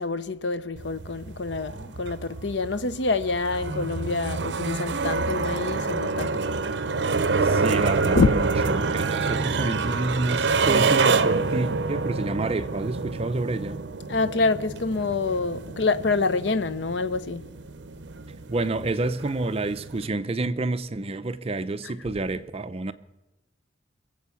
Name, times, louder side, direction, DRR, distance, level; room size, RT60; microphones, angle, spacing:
voice 1, 0.0-6.5 8.1-8.3 14.1-17.4, left 3 dB, 75° left, 0.7 m, -26 dB
sound 1, 0.8-20.1, right 4 dB, 65° right, 0.7 m, -27 dB
voice 2, 7.1-13.8 18.5-22.9, right 2 dB, 35° right, 0.6 m, -29 dB
22.5 x 7.8 x 7.1 m
head